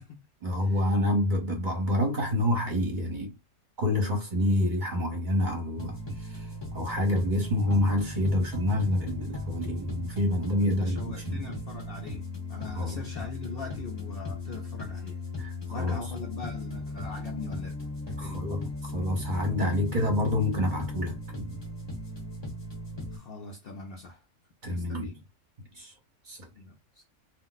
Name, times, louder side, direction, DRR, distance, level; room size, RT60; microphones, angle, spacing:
voice 1, 0.4-3.3 3.8-11.4 12.7-13.0 15.4-16.0 18.2-21.6 24.6-25.2 25.7-25.9 26.3-26.5, left 1 dB, 40° right, 1.0 m, -28 dB
sound 1, 5.8-23.2, left 2 dB, 25° left, 0.8 m, -37 dB
voice 2, 10.6-12.2 12.5-15.2 15.7-17.8 18.1-18.4 23.1-24.2 24.7-25.2 26.5-27.0, left 3 dB, 60° left, 0.6 m, -41 dB
2.4 x 2.0 x 3.9 m
omnidirectional pair, 1.4 m